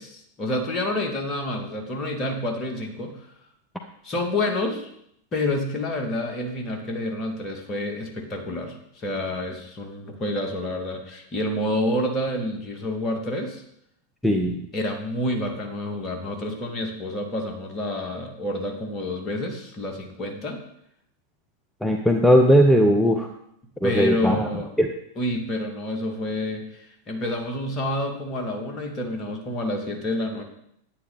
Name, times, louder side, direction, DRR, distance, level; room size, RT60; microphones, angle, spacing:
voice 1, 0.0-3.2 4.0-4.9 5.3-13.6 14.7-20.6 23.8-24.7 25.2-30.4, left 1 dB, 30° left, 3 dB, 2.1 m, -28 dB
voice 2, 14.2-14.6 21.8-23.3 23.8-24.4 24.8-24.9, equal, 5° left, 3 dB, 0.8 m, -18 dB
10.0 x 9.7 x 4.0 m, 0.74 s
figure-of-eight pair, 90°, 0 cm